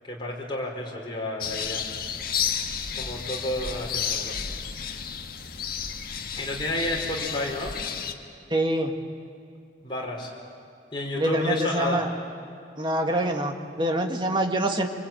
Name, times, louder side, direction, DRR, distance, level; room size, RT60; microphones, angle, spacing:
voice 1, 0.1-1.8 2.9-4.3 6.4-7.7 9.8-10.3 10.9-12.0, left 1 dB, 25° left, -2 dB, 4.7 m, -30 dB
sound 1, 1.4-8.1, left 7 dB, 55° left, 1.5 m, -32 dB
voice 2, 8.5-8.9 11.1-12.1 12.8-14.9, right 1 dB, 25° right, 3 dB, 1.9 m, -25 dB
25.5 x 24.5 x 9.1 m, 2.3 s
head